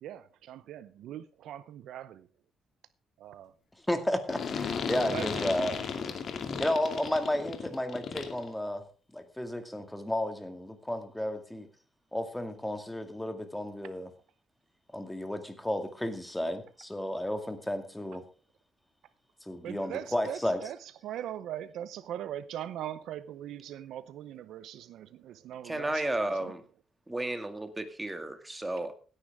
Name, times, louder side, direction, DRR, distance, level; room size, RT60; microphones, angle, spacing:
voice 1, 0.0-2.3 3.2-3.5 5.1-5.6 19.6-20.8 21.0-26.5, right 11 dB, 80° right, 0.7 m, -40 dB
voice 2, 3.9-5.8 6.6-8.8 9.1-11.7 12.1-14.1 14.9-18.2 19.5-20.6, left 1 dB, 5° left, 2.1 m, -32 dB
sound 1, 4.3-8.5, left 6 dB, 55° left, 2.3 m, -34 dB
voice 3, 25.6-26.6 27.1-28.9, right 1 dB, 15° right, 2.2 m, -33 dB
16.5 x 9.9 x 3.6 m
cardioid pair, 90°, 0 cm